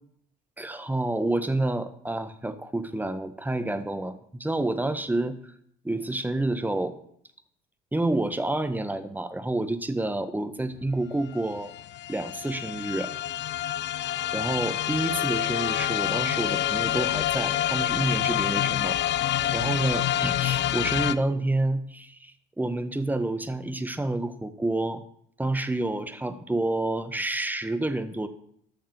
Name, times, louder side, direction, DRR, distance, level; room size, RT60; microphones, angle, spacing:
voice 1, 0.6-5.4 5.8-7.0 7.9-11.7 12.1-13.1 14.3-19.0 19.5-25.0 25.4-28.3, right 2 dB, 10° right, 10 dB, 1.5 m, -29 dB
sound 1, 10.9-11.0 11.2-21.1, left 12 dB, 55° left, 0.7 m, -27 dB
13.0 x 6.6 x 6.7 m, 0.66 s
hypercardioid pair, 65°, 21 cm